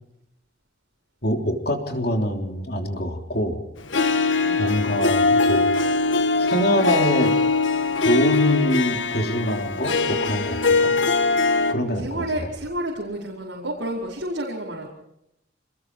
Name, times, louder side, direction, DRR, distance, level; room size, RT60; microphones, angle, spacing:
voice 1, 1.2-3.6 4.6-5.7 6.4-7.3 8.0-10.9 11.7-12.2, equal, 55° left, 3 dB, 3.5 m, -24 dB
Harp, 3.9-11.7, left 3 dB, 85° left, 1.6 m, -21 dB
voice 2, 11.6-14.9, right 1 dB, 85° right, -4 dB, 5.0 m, -30 dB
28.0 x 20.5 x 4.8 m, 0.79 s
head